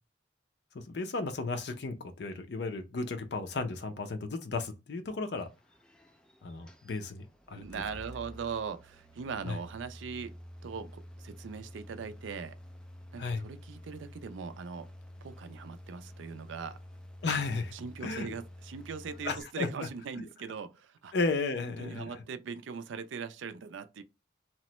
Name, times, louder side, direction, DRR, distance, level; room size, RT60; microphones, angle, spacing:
voice 1, 0.7-5.5 6.4-7.3 7.5-7.6 9.5-9.6 13.2-13.4 17.2-17.7 18.0-18.3 19.2-19.7 21.1-22.1, left 3 dB, 65° left, 0.5 m, -34 dB
sound 1, 5.4-19.4, equal, 5° left, 0.3 m, -50 dB
voice 2, 7.6-10.4 10.6-12.6 13.1-14.9 15.2-16.8 17.7-21.1 21.6-24.0, right 5 dB, 80° right, 0.4 m, -40 dB
3.0 x 2.1 x 2.9 m
head